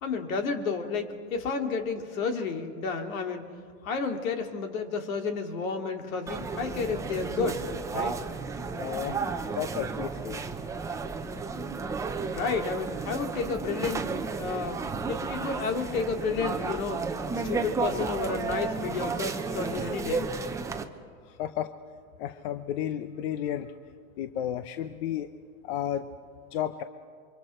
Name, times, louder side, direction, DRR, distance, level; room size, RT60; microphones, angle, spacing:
voice 1, 0.0-3.4 3.8-7.6 7.9-8.2 12.3-14.1 14.4-17.0 17.4-20.3, left 4 dB, 70° left, 4 dB, 2.8 m, -31 dB
sound 1, 6.3-20.8, right 4 dB, 5° right, 0.7 m, -33 dB
voice 2, 8.8-9.2 9.5-10.4 21.3-21.7 22.2-23.8 24.2-25.3 25.6-26.1 26.5-26.8, left 10 dB, 45° left, 10 dB, 0.8 m, -32 dB
28.5 x 24.5 x 4.5 m, 2.1 s
supercardioid pair, 140°, 42 cm